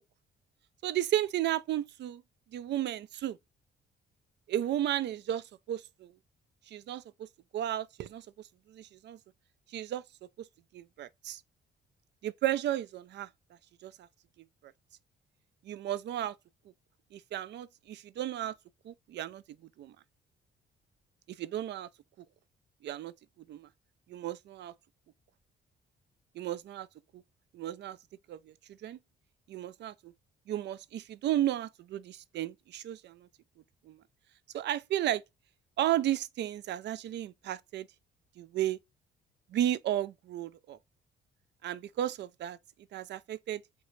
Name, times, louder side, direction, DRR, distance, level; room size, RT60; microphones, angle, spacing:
voice 1, 0.8-2.2 2.5-3.4 4.5-6.1 6.7-7.3 7.5-8.3 8.7-9.2 9.7-10.0 10.7-11.4 12.2-13.3 13.8-14.1 14.6-14.7 15.6-16.3 17.1-18.5 18.8-19.4 19.8-20.0 21.3-21.9 22.8-23.1 23.5-23.7 24.1-24.7 26.4-26.9 27.5-28.0 28.3-28.5 28.8-29.0 29.5-30.1 30.5-33.3 33.9-34.0 34.5-35.2 35.8-37.9 38.4-38.8 39.5-40.8 41.6-42.6 42.9-43.6, right 12 dB, 60° right, 0.4 m, -33 dB
3.7 x 3.2 x 3.1 m
cardioid pair, 90°, 20 cm